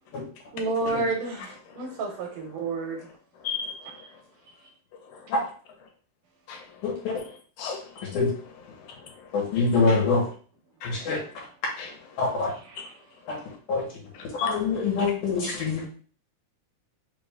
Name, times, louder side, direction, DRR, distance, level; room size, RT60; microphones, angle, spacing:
voice 1, 0.5-3.0 4.0-4.1 12.7-12.8, right 3 dB, 80° right, 2.4 m, -30 dB
voice 2, 6.8-7.1 8.1-8.3 9.3-10.2 10.8-11.2 12.2-12.5 13.3-13.4 13.7-13.8 14.4-15.8, left 4 dB, 75° left, 2.7 m, -24 dB
voice 3, 7.6-8.1 8.8-9.1 9.6-10.0 10.8-11.3 11.8-11.9 12.8-12.9 13.3-13.4 14.1-15.1 15.5-15.9, left 6 dB, 90° left, 2.6 m, -38 dB
5.5 x 2.6 x 3.4 m
omnidirectional pair, 3.7 m